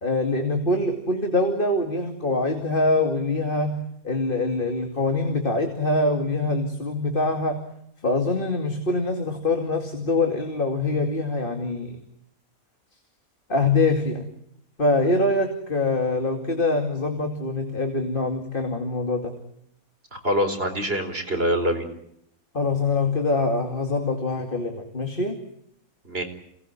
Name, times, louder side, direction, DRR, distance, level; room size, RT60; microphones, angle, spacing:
voice 1, 0.0-7.6 8.0-12.0 13.5-14.3 14.8-19.3 22.5-25.4, left 2 dB, 35° left, 4 dB, 2.7 m, -24 dB
voice 2, 20.1-21.9 26.0-26.2, equal, 40° right, 5 dB, 4.8 m, -25 dB
28.0 x 19.5 x 9.8 m, 0.75 s
omnidirectional pair, 1.5 m